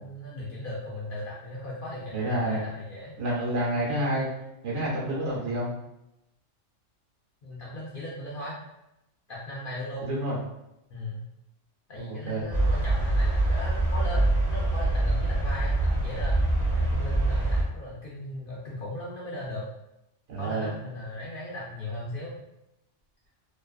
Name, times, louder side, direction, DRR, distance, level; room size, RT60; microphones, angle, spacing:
voice 1, 0.0-3.1 7.4-8.6 9.3-10.1 10.9-11.2 11.9-16.4 16.7-19.7 20.4-22.4, left 1 dB, 60° left, -5 dB, 0.6 m, -37 dB
voice 2, 2.1-2.6 3.2-4.3 4.6-5.7 10.0-10.4 11.9-12.5 20.3-20.7, right 1 dB, 70° right, -5 dB, 1.2 m, -29 dB
sound 1, 12.5-17.6, right 2 dB, 20° right, 0.9 m, -24 dB
2.5 x 2.4 x 2.4 m, 0.87 s
omnidirectional pair, 1.3 m